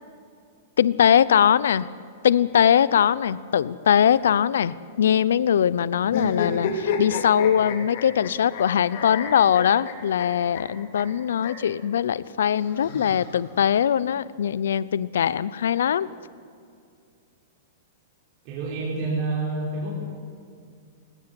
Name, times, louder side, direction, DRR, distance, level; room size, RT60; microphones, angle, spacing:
voice 1, 0.8-1.9 2.2-16.1, left 9 dB, 85° left, 19 dB, 0.6 m, -21 dB
sound 1, 6.1-8.6 8.9-10.3 10.5-10.6 10.9-11.0 11.4-11.5 12.6-13.6, left 6 dB, 55° left, 3.9 m, -30 dB
voice 2, 18.5-19.9, right 3 dB, 40° right, -5 dB, 5.3 m, -28 dB
18.5 x 17.5 x 9.8 m, 2.4 s
hypercardioid pair, 150°, 0 cm